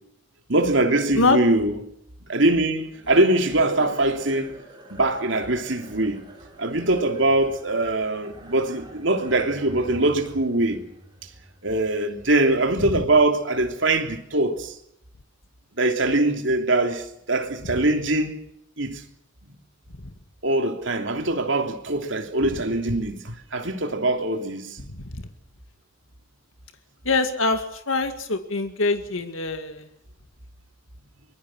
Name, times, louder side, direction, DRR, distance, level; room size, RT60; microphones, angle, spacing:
voice 1, 0.5-1.8 2.3-4.5 4.9-6.2 6.6-10.8 11.6-14.7 15.8-18.3 18.8-19.0 20.4-24.8, right 2 dB, 65° right, 3.2 m, -22 dB
sound 1, 2.9-13.4, equal, 25° right, 5.9 m, -46 dB
voice 2, 27.1-29.8, left 3 dB, 80° left, 2.1 m, -23 dB
24.5 x 22.5 x 6.3 m
head